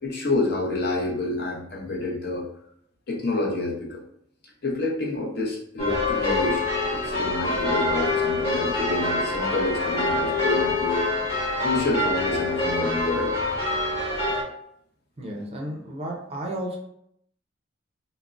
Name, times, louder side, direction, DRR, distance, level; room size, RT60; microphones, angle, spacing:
voice 1, 0.0-2.4 3.1-4.0 4.6-11.1 11.6-13.3, left 2 dB, 55° left, -2 dB, 0.7 m, -28 dB
sound 1, 5.8-14.4, left 2 dB, 30° left, 1.1 m, -25 dB
voice 2, 15.2-16.8, right 1 dB, 30° right, 1 dB, 0.5 m, -33 dB
3.6 x 2.0 x 2.4 m, 0.70 s
head